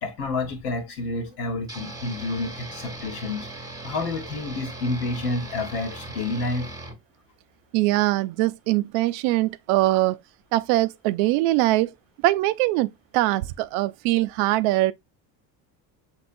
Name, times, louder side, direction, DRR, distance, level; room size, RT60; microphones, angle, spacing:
voice 1, 0.0-3.5 3.8-6.7, left 2 dB, 85° left, 1.4 m, -29 dB
sound 1, 1.7-7.0, right 2 dB, 10° right, 1.0 m, -39 dB
voice 2, 7.7-10.2 10.5-11.9 12.2-14.9, right 17 dB, 75° right, 0.5 m, -22 dB
6.3 x 3.0 x 2.5 m
supercardioid pair, 80°, 46 cm